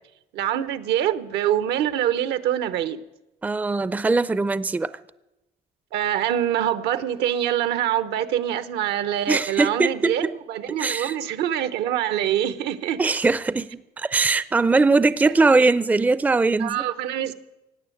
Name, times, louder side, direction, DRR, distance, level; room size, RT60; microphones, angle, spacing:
voice 1, 0.3-3.0 5.9-13.0 15.2-15.3 16.6-17.3, right 10 dB, 80° right, 1.0 m, -25 dB
voice 2, 3.4-4.9 9.3-10.3 10.7-11.2 13.0-16.9, right 3 dB, 10° right, 0.4 m, -21 dB
17.0 x 9.2 x 7.8 m
cardioid pair, 110°, 17 cm